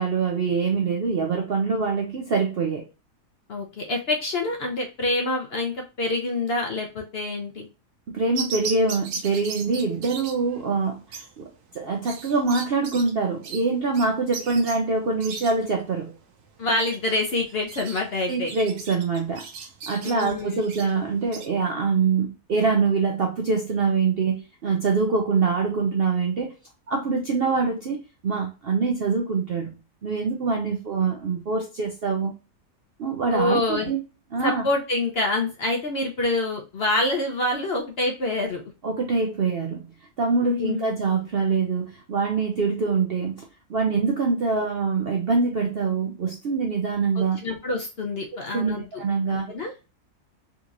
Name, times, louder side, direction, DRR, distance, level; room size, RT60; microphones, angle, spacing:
voice 1, 0.0-2.9 8.1-16.1 18.3-19.5 19.9-26.5 26.9-29.7 30.0-32.3 33.0-34.0 34.3-34.6 38.8-39.9 40.2-47.4 48.5-49.5, right 4 dB, 65° right, 0.6 m, -24 dB
voice 2, 3.5-7.7 16.6-18.5 20.0-20.6 33.3-33.9 34.4-38.6 40.4-41.0 47.2-48.9 49.3-49.7, left 2 dB, 55° left, 0.7 m, -26 dB
sound 1, 8.4-21.5, right 5 dB, 85° right, 1.2 m, -38 dB
3.7 x 3.0 x 2.4 m
omnidirectional pair, 1.6 m